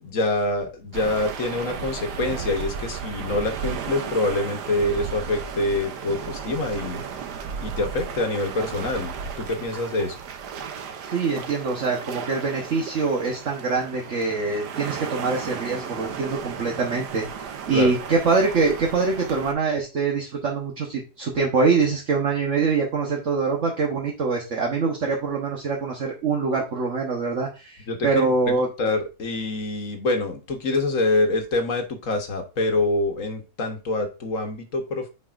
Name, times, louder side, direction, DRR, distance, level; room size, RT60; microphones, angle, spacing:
voice 1, 0.0-7.0 7.6-10.2 17.7-17.9 27.9-35.1, left 2 dB, 55° left, 5 dB, 1.6 m, -26 dB
sound 1, 0.9-19.5, right 7 dB, 85° right, 1.4 m, -34 dB
voice 2, 11.1-28.7, right 4 dB, 50° right, -1 dB, 1.4 m, -24 dB
9.0 x 4.7 x 2.5 m, 0.30 s
omnidirectional pair, 1.7 m